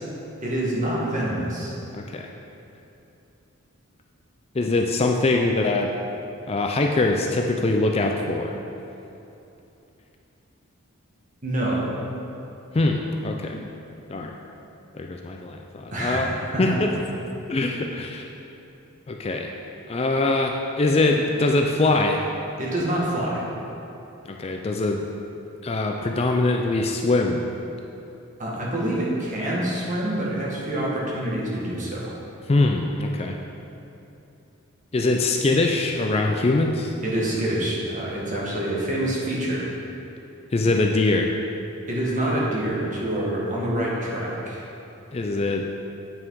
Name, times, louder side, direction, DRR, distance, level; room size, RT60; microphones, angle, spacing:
voice 1, 0.4-1.7 11.4-11.9 15.9-16.8 22.6-23.4 28.4-32.1 37.0-39.7 41.9-44.6, right 1 dB, 35° right, -5 dB, 1.6 m, -26 dB
voice 2, 1.9-2.3 4.5-5.9 6.5-8.6 12.7-13.7 14.1-14.4 14.9-16.3 16.6-16.9 17.5-18.3 19.1-19.5 19.9-22.3 24.3-25.0 25.6-27.5 32.5-33.4 34.9-36.9 40.5-41.3 45.1-45.7, left 2 dB, 25° left, 2 dB, 0.4 m, -23 dB
8.9 x 6.1 x 4.7 m, 2.9 s
head